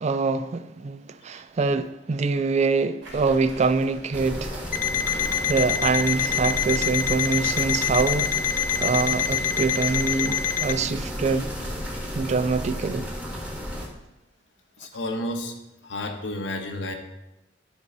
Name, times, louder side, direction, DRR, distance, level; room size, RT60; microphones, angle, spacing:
voice 1, 0.0-4.6 5.5-8.3 8.8-11.5 12.2-13.1, right 4 dB, 40° right, 0.4 m, -24 dB
Waves surf, 3.0-11.8, right 1 dB, 90° right, 2.4 m, -44 dB
sound 1, 4.1-13.9, equal, 5° right, 1.4 m, -33 dB
Alarm, 4.7-10.8, left 9 dB, 45° left, 0.5 m, -26 dB
voice 2, 14.8-15.5 15.8-16.9, left 1 dB, 85° left, 1.1 m, -31 dB
10.5 x 5.4 x 4.0 m
head